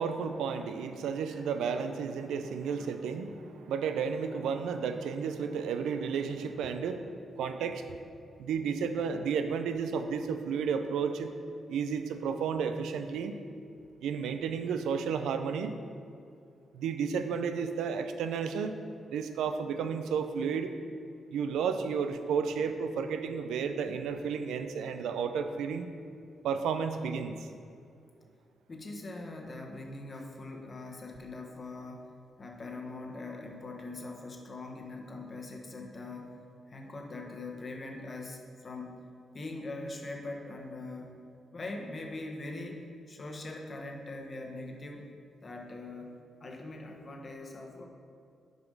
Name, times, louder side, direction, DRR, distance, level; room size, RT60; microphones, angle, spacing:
voice 1, 0.0-7.1 7.4-7.8 8.4-11.3 11.7-13.3 14.0-15.8 16.7-18.8 19.1-20.7 21.3-25.9 26.4-27.5, right 6 dB, 85° right, 8 dB, 0.4 m, -32 dB
voice 2, 28.7-36.3 36.7-39.0 39.3-41.1 41.5-45.1 45.4-47.9, left 2 dB, 40° left, 1 dB, 1.2 m, -42 dB
6.5 x 5.0 x 5.2 m, 2.4 s
supercardioid pair, 60°, 0 cm